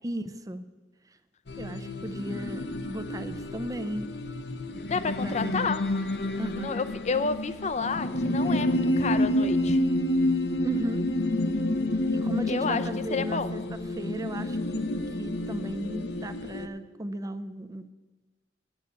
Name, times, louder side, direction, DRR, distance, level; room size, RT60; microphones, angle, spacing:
voice 1, 0.0-0.7 1.6-4.1 5.2-5.7 6.4-6.8 10.6-11.1 12.1-14.9 15.2-17.9, equal, 20° right, 11 dB, 0.6 m, -35 dB
sound 1, 1.5-16.7, left 1 dB, 70° left, 0.8 m, -29 dB
voice 2, 4.9-5.9 6.6-9.8 12.5-13.5, left 4 dB, 40° left, 12 dB, 0.6 m, -30 dB
9.8 x 8.1 x 8.2 m, 1.2 s
head